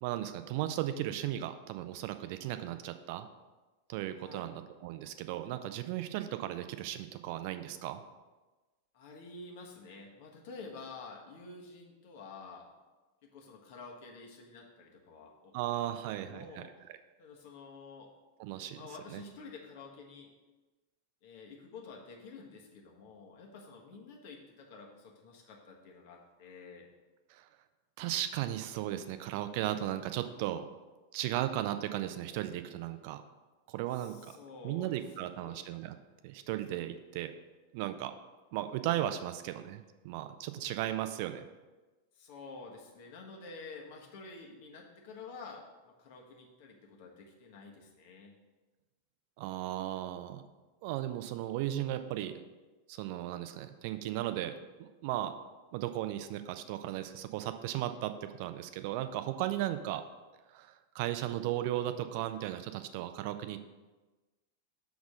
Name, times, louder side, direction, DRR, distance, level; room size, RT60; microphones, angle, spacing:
voice 1, 0.0-3.3 3.9-8.0 15.5-16.6 18.4-18.8 19.1-19.2 27.3-27.5 28.0-30.7 31.1-33.2 33.7-34.3 34.6-36.0 36.2-37.3 37.7-38.1 38.5-41.5 49.4-50.5 50.8-52.3 52.9-54.5 54.8-55.3 55.7-60.0 60.5-63.7, right 13 dB, 45° right, 10 dB, 0.5 m, -36 dB
voice 2, 4.2-4.5 8.9-12.7 13.2-15.5 16.2-16.7 17.2-18.1 18.6-20.3 21.2-26.9 33.9-35.8 42.1-48.3 61.1-61.3, left 4 dB, 50° left, 0 dB, 1.4 m, -50 dB
6.9 x 4.2 x 6.3 m, 1.2 s
figure-of-eight pair, 90°, 0 cm